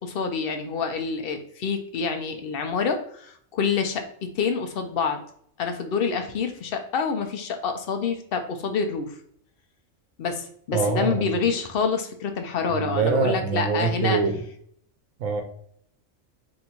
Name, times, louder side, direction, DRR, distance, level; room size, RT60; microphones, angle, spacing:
voice 1, 0.0-5.2 5.6-9.2 10.2-14.2, left 5 dB, 55° left, 5 dB, 0.7 m, -27 dB
voice 2, 10.7-11.3 12.7-14.4 15.2-15.4, right 5 dB, 80° right, 5 dB, 1.1 m, -24 dB
3.8 x 2.6 x 4.3 m, 0.64 s
omnidirectional pair, 1.4 m